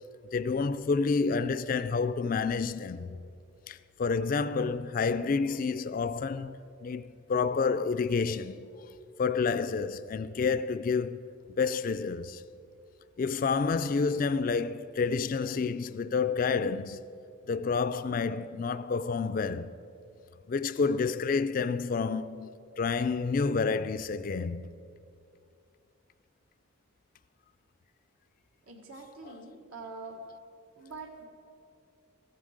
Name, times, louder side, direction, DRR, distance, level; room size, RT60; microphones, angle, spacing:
voice 1, 0.3-3.1 3.7-8.7 9.2-12.4 13.2-17.0 17.5-19.8 20.5-22.5 22.8-24.7 29.2-29.4, left 5 dB, 40° left, 0.3 m, -29 dB
voice 2, 28.7-30.2 30.7-31.3, right 4 dB, 85° right, 1.6 m, -44 dB
14.5 x 8.8 x 6.4 m
head